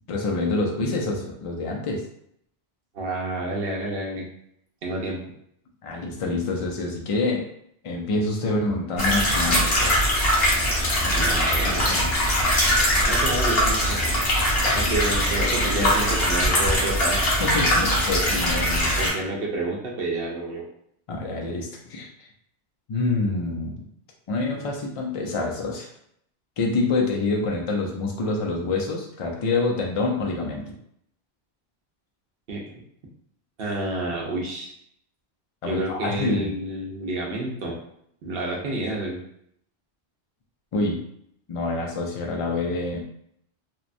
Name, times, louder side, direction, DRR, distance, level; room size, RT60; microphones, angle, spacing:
voice 1, 0.1-2.0 5.8-7.5 7.8-10.0 11.0-11.3 11.7-12.1 14.6-14.9 15.2-15.9 17.4-19.1 21.1-22.3 22.9-23.8 24.3-25.9 26.6-30.6 35.6-36.6 40.7-41.0 41.5-43.0, left 3 dB, 45° left, 0 dB, 0.4 m, -27 dB
voice 2, 2.9-4.2 4.8-5.2 11.1-11.9 13.1-14.0 14.7-17.2 19.0-20.6 32.5-32.7 33.6-34.7 35.6-37.8 38.2-39.2, right 2 dB, 65° right, -2 dB, 0.8 m, -29 dB
sound 1, 9.0-19.1, equal, 70° left, 1.1 m, -21 dB
2.9 x 2.1 x 2.5 m, 0.71 s
omnidirectional pair, 1.1 m